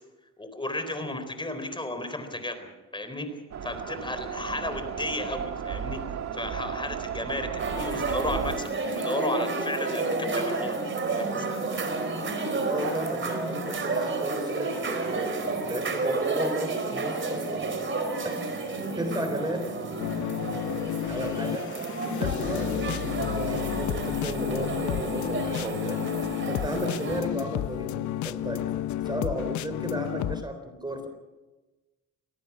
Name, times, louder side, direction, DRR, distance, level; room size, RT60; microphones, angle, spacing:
voice 1, 0.4-3.3 3.6-6.0 6.3-11.6, left 1 dB, 15° left, 8 dB, 4.1 m, -34 dB
sound 1, 3.5-8.6, right 8 dB, 60° right, 1.8 m, -34 dB
sound 2, 7.6-27.2, right 3 dB, 40° right, 4.3 m, -31 dB
voice 2, 12.7-17.7 18.2-18.4 18.9-19.7 21.1-21.7 22.1-26.0 26.5-28.7 29.0-31.1, right 1 dB, 15° right, 7 dB, 3.7 m, -34 dB
sound 3, 20.0-30.4, left 13 dB, 75° left, 0.7 m, -31 dB
24.5 x 18.0 x 6.1 m, 1.2 s
cardioid pair, 90°, 30 cm